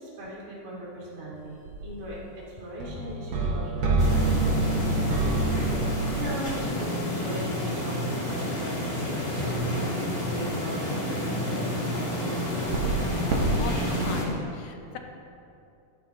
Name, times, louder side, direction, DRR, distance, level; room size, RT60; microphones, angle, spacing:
voice 1, 0.0-5.3 6.1-12.4, right 1 dB, 50° right, -6 dB, 3.5 m, -39 dB
sound 1, 1.7-2.1 2.8-6.5 9.5-9.6 12.4-13.0 13.3-13.5, right 2 dB, 75° right, 2.9 m, -26 dB
sound 2, 4.0-14.2, equal, 20° left, 1.4 m, -30 dB
voice 2, 13.6-15.0, left 5 dB, 70° left, 4 dB, 1.6 m, -37 dB
13.0 x 12.5 x 3.1 m, 2.6 s
omnidirectional pair, 3.7 m